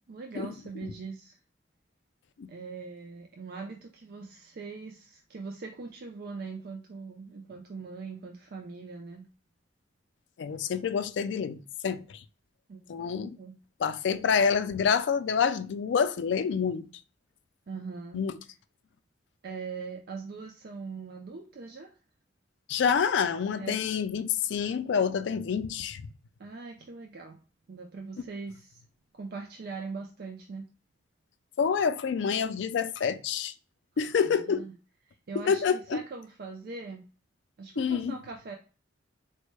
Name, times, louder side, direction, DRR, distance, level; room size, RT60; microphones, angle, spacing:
voice 1, 0.0-1.4 2.5-9.3 12.7-13.6 17.7-18.2 19.4-21.9 23.6-23.9 26.4-27.4 27.7-28.8 29.1-30.7 34.0-34.7 35.1-37.0 37.6-38.6, right 4 dB, 55° right, 0.4 m, -41 dB
voice 2, 10.4-11.6 11.8-12.0 12.9-13.4 13.8-16.9 18.1-18.3 22.7-26.0 31.6-33.5 34.0-34.7 35.4-36.0 37.8-38.1, left 6 dB, 65° left, 0.3 m, -27 dB
4.2 x 2.1 x 3.1 m
head